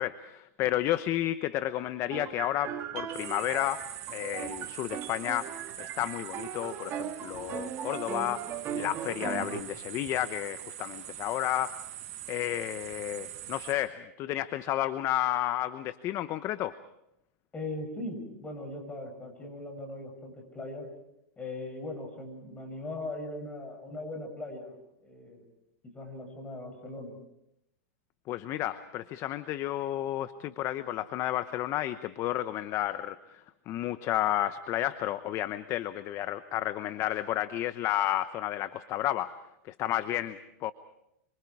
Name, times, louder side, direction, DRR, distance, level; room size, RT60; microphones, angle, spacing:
voice 1, 0.0-11.8 12.3-16.7 28.3-33.2 33.7-39.3 39.7-40.7, left 13 dB, 35° left, 12 dB, 0.9 m, -32 dB
sound 1, 2.1-9.6, right 9 dB, 30° right, 2.0 m, -38 dB
sound 2, 3.1-13.7, right 13 dB, 55° right, 6.6 m, -43 dB
voice 2, 17.5-20.9 21.4-24.8 25.0-25.4 25.8-27.2, left 2 dB, 15° left, 4 dB, 7.5 m, -39 dB
28.0 x 26.0 x 4.8 m, 0.82 s
hypercardioid pair, 130°, 8 cm